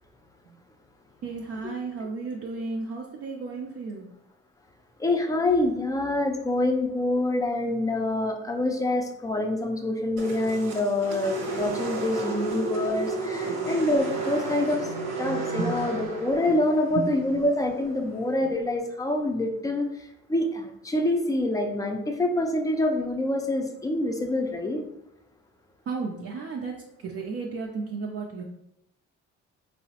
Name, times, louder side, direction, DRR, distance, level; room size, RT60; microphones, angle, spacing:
voice 1, 1.2-4.1 13.5-13.6 15.6-16.1 16.9-17.1 25.9-28.4, right 4 dB, 50° right, -1 dB, 0.5 m, -33 dB
voice 2, 5.0-14.9 15.2-19.9 20.3-24.8, left 1 dB, 10° left, 4 dB, 0.4 m, -26 dB
sound 1, 10.2-18.4, right 3 dB, 75° right, 1.0 m, -33 dB
3.6 x 2.0 x 2.8 m, 0.82 s
cardioid pair, 90°, 30 cm